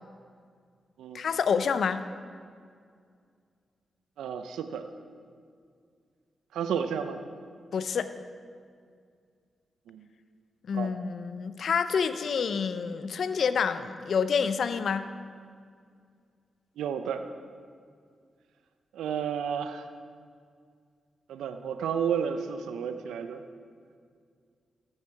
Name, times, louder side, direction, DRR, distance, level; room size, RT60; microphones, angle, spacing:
voice 1, 1.1-2.0 7.7-8.1 10.7-15.1, left 6 dB, 70° left, 12 dB, 0.6 m, -28 dB
voice 2, 4.2-4.8 6.5-7.2 9.9-10.0 10.7-10.9 16.8-17.2 18.9-19.8 21.3-23.4, right 7 dB, 85° right, 9 dB, 0.5 m, -31 dB
13.5 x 9.6 x 4.8 m, 2.2 s
supercardioid pair, 40°, 0 cm